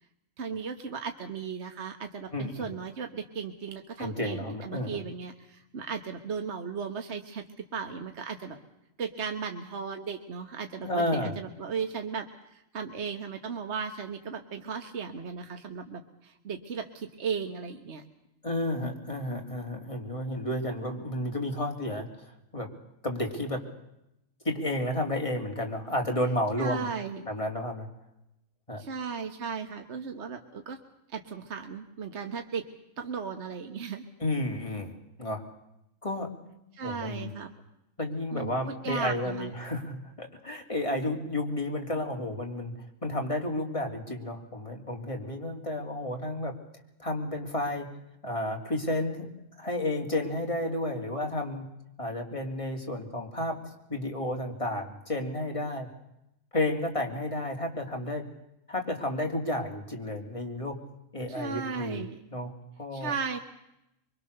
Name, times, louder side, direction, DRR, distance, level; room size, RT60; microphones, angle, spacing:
voice 1, 0.4-8.6 9.0-18.0 26.6-27.3 28.8-30.8 31.1-32.7 33.0-34.0 36.7-37.5 38.3-39.5 61.3-62.2 62.9-63.4, right 6 dB, 55° right, 5 dB, 1.6 m, -36 dB
voice 2, 2.3-2.7 4.0-5.0 10.8-11.4 18.4-22.1 22.5-22.7 23.0-23.6 24.4-26.9 27.2-27.9 28.7-28.8 34.2-35.4 36.0-36.3 36.8-37.3 38.0-42.7 43.0-46.5 47.0-47.9 48.2-49.3 49.6-51.6 52.0-53.6 53.9-55.9 56.5-58.2 58.7-60.7 61.1-62.0 62.3-62.5 62.8-63.1, left 1 dB, 25° left, 1 dB, 3.3 m, -31 dB
24.5 x 24.0 x 6.7 m, 0.85 s
omnidirectional pair, 1.4 m